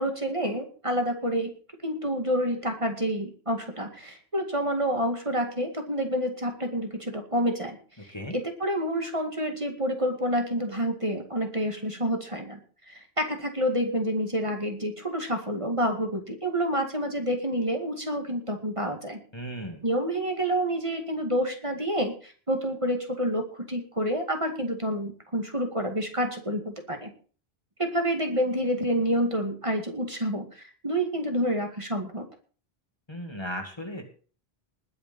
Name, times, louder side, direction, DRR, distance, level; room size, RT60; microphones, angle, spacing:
voice 1, 0.0-1.5 1.8-7.8 8.0-12.6 12.9-19.2 19.8-27.1 27.8-32.3, equal, 30° right, 4 dB, 2.3 m, -28 dB
voice 2, 19.3-19.8 33.1-34.0, equal, 25° left, 4 dB, 2.1 m, -36 dB
20.5 x 7.0 x 5.3 m, 0.40 s
omnidirectional pair, 1.1 m